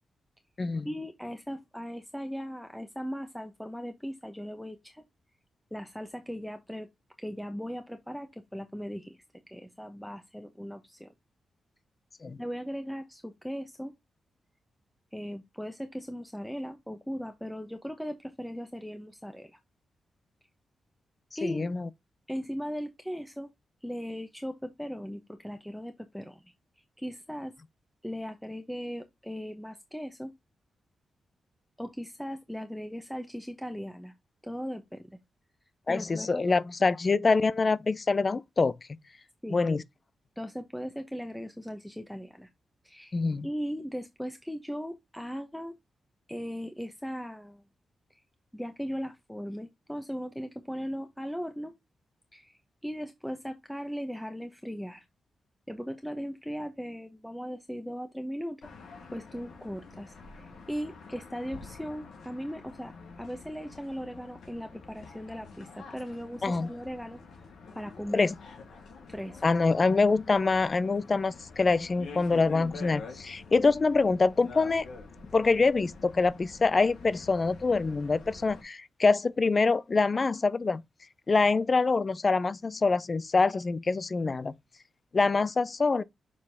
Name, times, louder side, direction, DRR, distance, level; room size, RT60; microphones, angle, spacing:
voice 1, 0.8-5.0 5.7-6.9 7.2-9.2 9.5-11.1 12.4-13.9 15.1-19.6 21.4-21.7 22.3-23.5 23.8-26.4 27.0-27.5 28.0-30.3 31.8-34.1 34.4-35.2 35.9-36.4 39.4-39.6 40.4-42.5 42.8-43.2 43.4-45.7 46.3-47.6 48.5-51.7 52.3-55.1 55.7-58.6 59.1-67.2 67.7-68.3 69.1-69.4, equal, 5° left, 1.0 m, -38 dB
voice 2, 21.4-21.9 35.9-38.8 39.5-39.8 43.1-43.5 66.4-66.7 68.1-68.3 69.4-74.9 75.3-80.8 81.3-84.5 85.1-86.0, left 4 dB, 40° left, 0.6 m, -25 dB
sound 1, 58.6-78.6, left 4 dB, 80° left, 3.1 m, -47 dB
7.1 x 4.7 x 3.5 m
cardioid pair, 75°, 0 cm